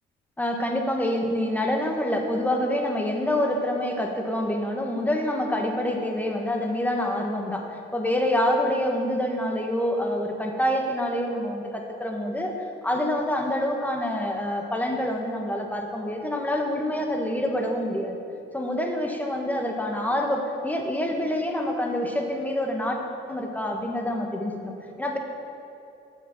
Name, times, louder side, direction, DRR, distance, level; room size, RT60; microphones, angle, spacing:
voice 1, 0.4-18.2 18.5-23.0 23.3-25.2, left 1 dB, 10° left, 2 dB, 1.2 m, -26 dB
7.3 x 6.6 x 6.0 m, 2.8 s
cardioid pair, 90°, 20 cm